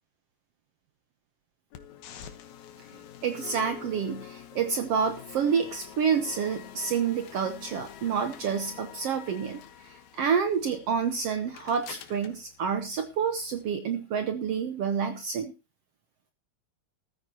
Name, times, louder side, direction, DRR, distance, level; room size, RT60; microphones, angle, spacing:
sound 1, 1.7-13.7, left 9 dB, 75° left, 2.5 m, -47 dB
voice 1, 3.2-9.6 10.2-15.5, right 6 dB, 65° right, 7 dB, 1.9 m, -28 dB
14.0 x 14.0 x 2.9 m, 0.28 s
omnidirectional pair, 3.4 m